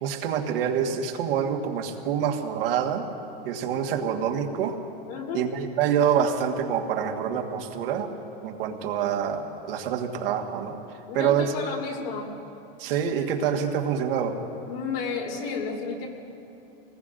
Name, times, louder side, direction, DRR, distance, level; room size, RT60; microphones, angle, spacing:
voice 1, 0.0-3.1 3.4-4.8 5.3-8.1 8.4-10.8 11.1-11.5 12.8-14.4, right 8 dB, 70° right, 2 dB, 1.6 m, -26 dB
voice 2, 5.1-5.5 11.1-12.3 14.7-16.1, left 5 dB, 65° left, -1 dB, 3.4 m, -32 dB
27.0 x 19.5 x 2.6 m, 2.8 s
supercardioid pair, 145°, 29 cm